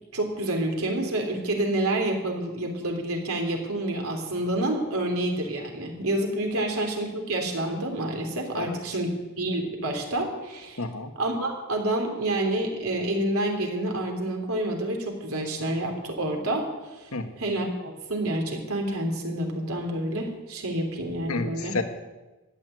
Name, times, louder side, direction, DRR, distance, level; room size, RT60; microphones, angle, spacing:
voice 1, 0.1-9.1 9.4-10.8 11.2-17.1 17.4-21.7, right 1 dB, 80° right, 2 dB, 3.2 m, -28 dB
voice 2, 10.8-11.1 17.1-17.3 21.3-21.8, left 3 dB, 85° left, 6 dB, 1.6 m, -30 dB
14.0 x 9.7 x 9.1 m, 1.1 s
head